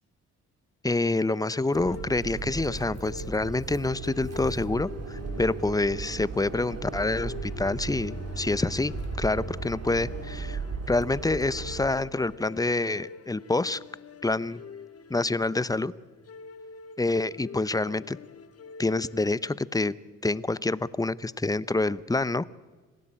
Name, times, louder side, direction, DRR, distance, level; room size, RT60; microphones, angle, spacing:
voice 1, 0.8-10.6 10.9-13.8 14.2-14.6 15.1-15.9 17.0-18.2 18.8-19.9 20.2-22.4, left 2 dB, 10° left, 19 dB, 0.7 m, -27 dB
sound 1, 1.3-19.8, left 6 dB, 50° left, 2.2 m, -46 dB
sound 2, 1.7-11.9, right 4 dB, 55° right, 3.5 m, -36 dB
27.0 x 17.0 x 8.9 m, 1.3 s
cardioid pair, 90°, 30 cm